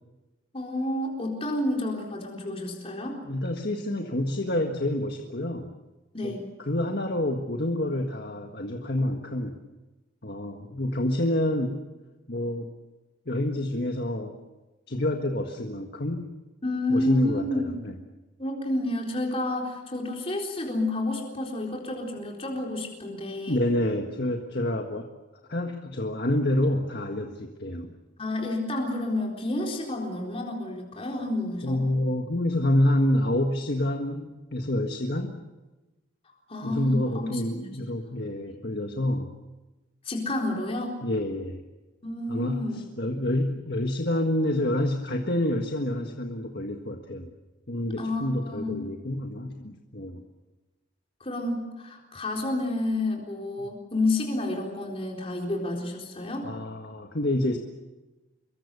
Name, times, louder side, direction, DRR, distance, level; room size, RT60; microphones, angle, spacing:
voice 1, 0.5-3.2 6.1-6.4 16.6-17.7 18.4-23.6 28.2-31.8 36.5-37.8 38.1-38.2 40.0-41.0 42.0-42.8 48.0-48.8 51.2-56.5, left 1 dB, 30° left, 0 dB, 4.1 m, -30 dB
voice 2, 3.2-5.7 6.2-9.6 10.2-11.8 12.3-12.7 13.2-14.4 14.9-16.3 16.9-18.0 23.5-25.1 25.5-28.0 31.6-35.3 36.6-39.3 41.0-41.6 42.3-47.3 47.7-50.2 56.4-57.6, left 1 dB, 55° left, 3 dB, 1.7 m, -28 dB
25.5 x 23.0 x 6.9 m, 1.1 s
head